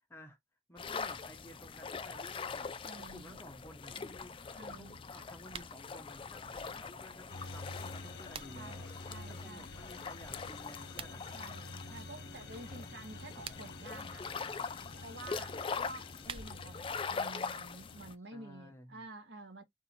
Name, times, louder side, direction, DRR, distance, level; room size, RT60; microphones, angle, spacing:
voice 1, 0.7-8.9 9.3-11.4 18.3-19.0, equal, 15° left, 1.0 m, -54 dB
sound 1, 0.8-18.1, left 5 dB, 30° left, 0.4 m, -43 dB
voice 2, 2.8-3.4 4.6-5.0 8.5-9.8 11.3-14.3 15.0-19.6, right 2 dB, 80° right, 1.2 m, -50 dB
sound 2, 5.5-5.8 7.8-8.8 10.8-11.2 13.2-13.9 15.9-16.8, right 6 dB, 30° right, 0.4 m, -48 dB
sound 3, 7.3-18.1, left 2 dB, 70° left, 1.1 m, -50 dB
3.8 x 2.7 x 4.3 m
head